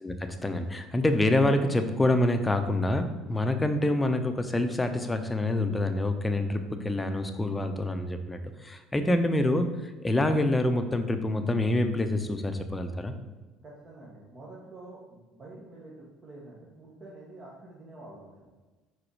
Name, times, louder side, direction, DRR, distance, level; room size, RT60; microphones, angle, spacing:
voice 1, 0.0-13.1, left 1 dB, 15° left, 7 dB, 0.7 m, -26 dB
voice 2, 13.6-18.4, right 2 dB, 35° right, -5 dB, 1.4 m, -47 dB
4.9 x 4.2 x 4.8 m, 1.2 s
hypercardioid pair, 65°, 0 cm